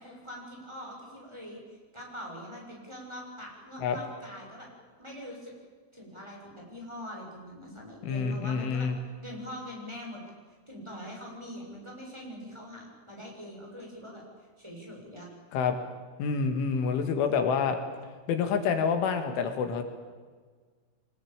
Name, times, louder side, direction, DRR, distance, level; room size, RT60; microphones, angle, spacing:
voice 1, 0.0-4.7 5.0-5.5 5.9-8.9 9.2-10.2 10.7-14.2 14.6-15.3, equal, 5° right, -2 dB, 6.8 m, -43 dB
voice 2, 8.0-9.0 15.5-15.8 16.2-17.8 18.3-19.8, left 6 dB, 80° left, 7 dB, 4.4 m, -27 dB
24.5 x 21.5 x 8.9 m, 1.5 s
omnidirectional pair, 5.5 m